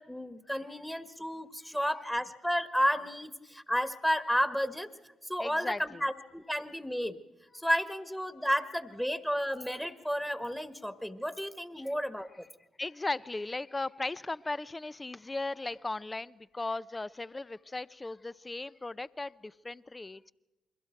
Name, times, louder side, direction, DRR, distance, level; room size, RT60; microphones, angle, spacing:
voice 1, 0.0-4.9 5.2-7.2 7.5-12.5, equal, 5° left, 10 dB, 1.6 m, -32 dB
voice 2, 5.4-6.0 11.7-11.9 12.8-20.2, left 2 dB, 25° left, 19 dB, 0.6 m, -37 dB
28.5 x 23.0 x 4.6 m, 1.1 s
hypercardioid pair, 45°, 0 cm